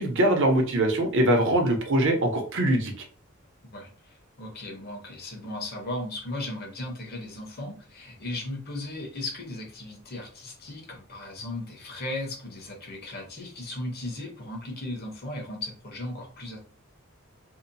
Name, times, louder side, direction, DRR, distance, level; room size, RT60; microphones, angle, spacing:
voice 1, 0.0-2.9, right 1 dB, 60° right, 3 dB, 0.7 m, -22 dB
voice 2, 3.7-16.6, left 1 dB, 50° left, 1 dB, 0.9 m, -36 dB
2.8 x 2.1 x 2.6 m, 0.39 s
head